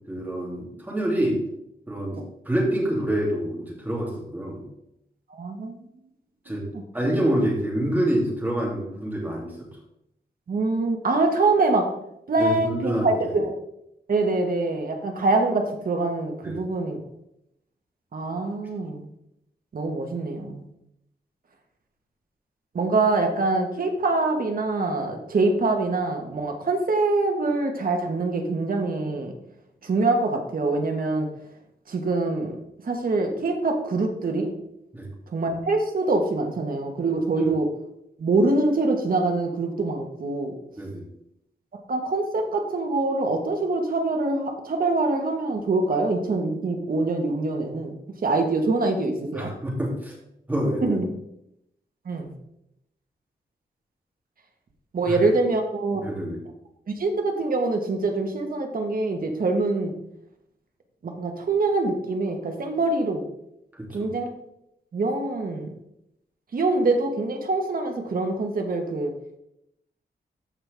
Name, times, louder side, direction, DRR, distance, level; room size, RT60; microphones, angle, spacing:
voice 1, 0.1-1.4 1.9-4.6 6.4-6.6 6.9-9.5 12.4-13.3 16.4-16.7 34.9-35.1 40.8-41.0 49.3-50.1 50.5-51.0 55.0-55.2 55.9-56.4 63.7-64.1, right 1 dB, 10° right, -3 dB, 2.9 m, -27 dB
voice 2, 5.3-5.8 6.7-6.8 10.5-11.9 12.3-13.6 14.1-17.0 18.1-19.0 19.7-20.7 22.7-29.3 29.8-31.3 31.9-32.6 32.8-34.5 35.3-37.7 38.2-40.5 41.9-49.5 50.8-51.1 52.0-52.3 54.9-56.0 56.9-59.9 61.0-63.3 63.9-64.3 64.9-65.7 66.5-69.1, right 3 dB, 55° right, 4 dB, 1.4 m, -24 dB
14.0 x 5.5 x 3.5 m, 0.81 s
wide cardioid pair, 130°, 17 cm